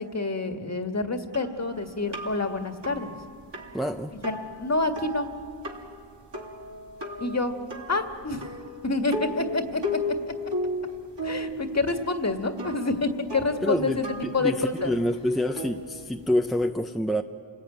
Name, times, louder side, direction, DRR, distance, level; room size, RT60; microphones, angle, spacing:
voice 1, 0.0-3.1 4.2-5.3 7.2-7.6 7.9-8.5 8.8-10.0 10.2-10.3 11.2-14.1 14.3-14.9, left 3 dB, 35° left, 5 dB, 1.9 m, -28 dB
sound 1, 1.3-16.7, left 1 dB, 60° right, 2.9 m, -36 dB
voice 2, 3.7-4.1 13.6-14.0 14.4-17.2, equal, ahead, 4 dB, 0.7 m, -26 dB
28.5 x 19.0 x 9.2 m, 2.2 s
wide cardioid pair, 80°, 47 cm